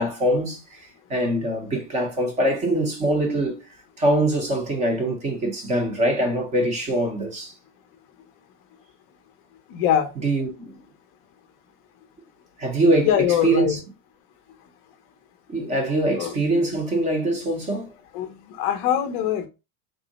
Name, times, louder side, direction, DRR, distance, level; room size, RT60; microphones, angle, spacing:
voice 1, 0.0-3.7 4.0-7.5 10.2-10.8 12.6-13.8 15.5-17.9, right 1 dB, 15° right, 0.6 m, -23 dB
voice 2, 9.7-10.1 13.1-13.8 16.2-16.3 18.1-19.5, left 10 dB, 35° left, 0.5 m, -23 dB
3.7 x 2.0 x 3.9 m
supercardioid pair, 165°, 45 cm